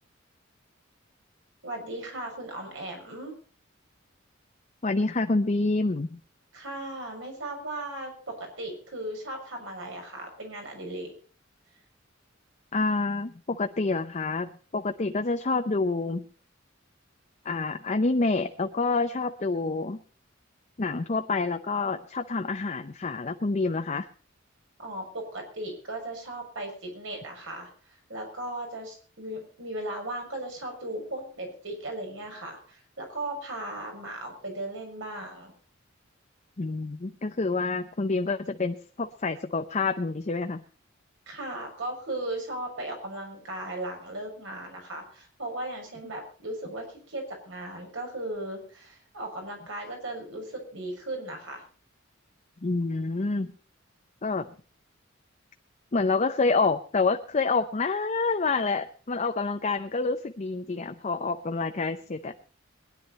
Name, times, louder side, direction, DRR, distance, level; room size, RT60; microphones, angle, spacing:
voice 1, 1.6-3.3 6.5-11.1 24.8-27.7 28.1-35.5 41.3-51.6, right 1 dB, 70° right, 2 dB, 6.4 m, -37 dB
voice 2, 4.8-6.2 12.7-16.2 17.4-20.0 20.8-24.1 36.6-40.6 52.6-53.5 54.2-54.5 55.9-62.3, left 3 dB, 35° left, 7 dB, 0.7 m, -27 dB
22.0 x 11.0 x 4.2 m, 0.41 s
head